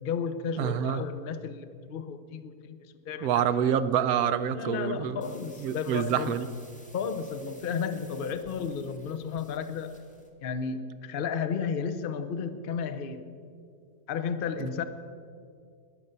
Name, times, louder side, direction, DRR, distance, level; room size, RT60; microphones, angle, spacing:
voice 1, 0.0-2.8 3.1-3.4 4.5-6.3 6.9-10.0 10.4-13.3 14.1-14.8, left 6 dB, 45° left, 10 dB, 0.7 m, -33 dB
voice 2, 0.6-1.0 3.2-5.2 5.6-6.5 14.6-14.7, right 9 dB, 70° right, 12 dB, 1.0 m, -27 dB
sound 1, 5.2-10.3, equal, 5° left, 1.4 m, -55 dB
21.0 x 7.0 x 6.7 m, 2.2 s
omnidirectional pair, 1.7 m